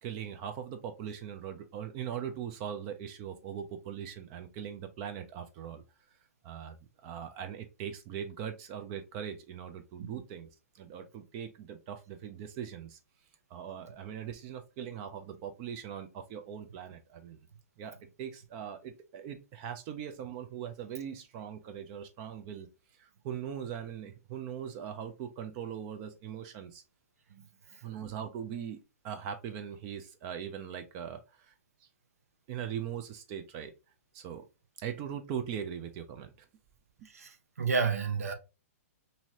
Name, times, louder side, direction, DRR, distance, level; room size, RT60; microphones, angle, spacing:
voice 1, 0.0-5.8 6.4-13.0 13.5-17.4 17.8-26.8 27.8-31.5 31.8-31.9 32.5-33.7 34.1-34.4 34.8-36.5 37.0-37.1, right 8 dB, 35° right, 0.5 m, -40 dB
voice 2, 37.0-38.3, right 5 dB, 80° right, 0.7 m, -31 dB
2.7 x 2.7 x 3.0 m
hypercardioid pair, 130°, 8 cm